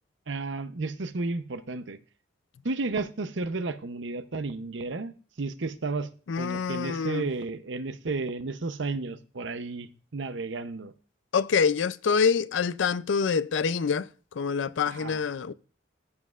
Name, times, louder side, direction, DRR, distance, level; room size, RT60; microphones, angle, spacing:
voice 1, 0.3-2.0 2.6-6.1 6.4-10.9 14.9-15.2, right 3 dB, 70° right, 0.7 m, -32 dB
voice 2, 6.3-7.2 11.3-14.1 14.4-15.5, left 6 dB, 75° left, 0.4 m, -26 dB
14.5 x 7.3 x 2.4 m
head